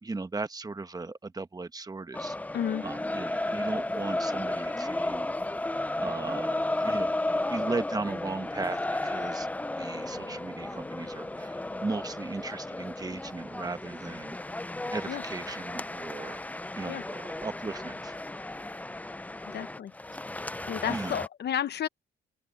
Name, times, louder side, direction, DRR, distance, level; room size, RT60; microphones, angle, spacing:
voice 1, 0.0-2.4 2.8-5.3 6.0-7.1 7.5-9.5 9.8-14.4 14.9-16.4 16.8-18.2 20.9-21.2, right 3 dB, 20° right, 1.3 m, -36 dB
sound 1, 2.1-21.3, left 2 dB, 10° left, 0.5 m, -34 dB
voice 2, 2.5-2.8 15.1-15.2 16.9-17.0 19.5-19.9 20.7-21.9, left 9 dB, 55° left, 0.8 m, -31 dB
sound 2, 7.6-12.5, right 14 dB, 90° right, 2.0 m, -59 dB
open air
cardioid pair, 90°, 20 cm